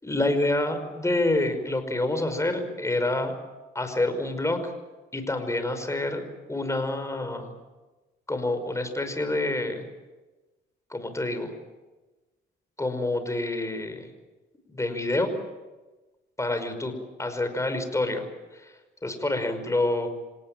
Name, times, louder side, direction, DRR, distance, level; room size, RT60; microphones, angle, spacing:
voice 1, 0.0-3.3 3.7-4.7 5.1-6.2 6.5-7.5 8.3-9.9 10.9-11.5 12.8-14.1 14.7-15.3 16.4-16.9 17.2-18.3 18.5-18.7 19.0-20.1, left 2 dB, 15° left, 8 dB, 5.5 m, -27 dB
27.5 x 18.5 x 9.1 m, 1.2 s
cardioid pair, 90°, 20 cm